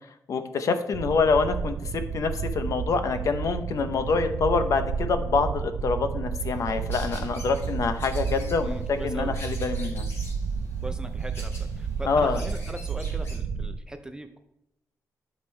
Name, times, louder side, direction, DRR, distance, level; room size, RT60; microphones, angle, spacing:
voice 1, 0.3-10.1 12.1-12.4, left 4 dB, 60° left, 9 dB, 0.7 m, -26 dB
sound 1, 0.9-13.8, right 6 dB, 90° right, 0.4 m, -31 dB
sound 2, 6.4-13.4, left 1 dB, 45° left, 2.7 m, -46 dB
voice 2, 8.6-9.3 10.8-14.4, right 1 dB, 10° right, 7 dB, 0.4 m, -39 dB
11.0 x 5.1 x 3.2 m, 0.85 s
wide cardioid pair, 160°, 6 cm